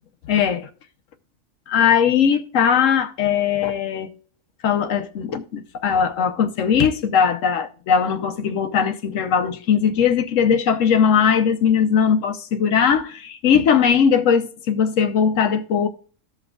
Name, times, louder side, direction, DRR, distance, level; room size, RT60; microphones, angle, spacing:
voice 1, 0.3-0.7 1.7-4.1 4.6-15.9, left 7 dB, 75° left, 1.1 m, -19 dB
14.5 x 5.7 x 2.3 m
omnidirectional pair, 1.4 m